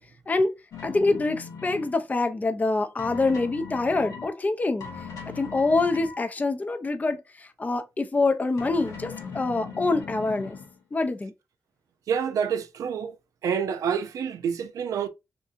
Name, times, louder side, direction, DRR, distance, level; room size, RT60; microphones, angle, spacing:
sound 1, 0.7-2.0 3.0-4.4 4.8-6.2 8.6-10.8, left 6 dB, 85° left, 0.7 m, -39 dB
voice 1, 0.8-4.9 5.3-10.6 10.9-11.3, left 3 dB, 30° left, 0.4 m, -25 dB
voice 2, 12.1-13.1 13.4-15.1, right 7 dB, 80° right, 0.4 m, -27 dB
2.6 x 2.4 x 2.4 m
supercardioid pair, 50°, 6 cm